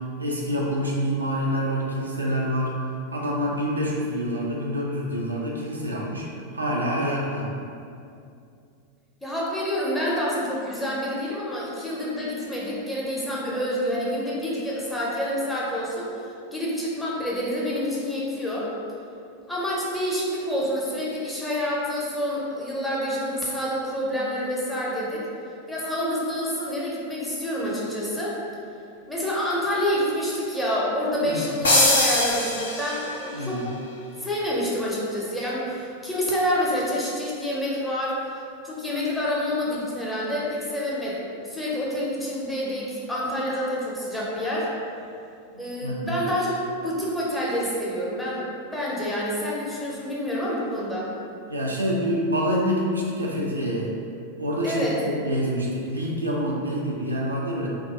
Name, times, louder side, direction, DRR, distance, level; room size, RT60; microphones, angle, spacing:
voice 1, 0.2-2.7 3.1-6.3 6.5-7.5 31.2-31.4 33.3-33.6 45.8-46.2 51.5-53.9 54.4-57.7, equal, 80° right, -3 dB, 0.3 m, -26 dB
voice 2, 9.2-18.7 19.5-25.2 25.7-28.4 29.1-33.8 34.2-44.7 45.6-51.1 54.6-55.0, equal, 5° left, -6 dB, 0.5 m, -28 dB
sound 1, 31.6-33.3, left 2 dB, 70° left, 0.5 m, -21 dB
2.3 x 2.1 x 2.6 m, 2.5 s
figure-of-eight pair, 90°, 0 cm